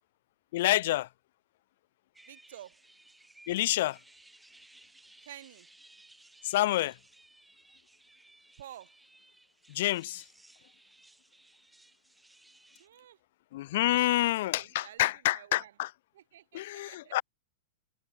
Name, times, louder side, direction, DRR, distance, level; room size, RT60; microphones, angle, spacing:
voice 1, 0.5-1.1 3.5-4.0 6.4-6.9 9.7-10.2 13.5-15.9 16.5-17.2, left 16 dB, 65° left, 0.4 m, -28 dB
sound 1, 2.1-12.9, right 2 dB, 5° right, 2.6 m, -59 dB
voice 2, 2.3-2.8 5.2-5.7 8.6-8.9 12.8-13.2 13.8-15.7 16.1-17.2, right 12 dB, 75° right, 4.3 m, -51 dB
hypercardioid pair, 135°, 0 cm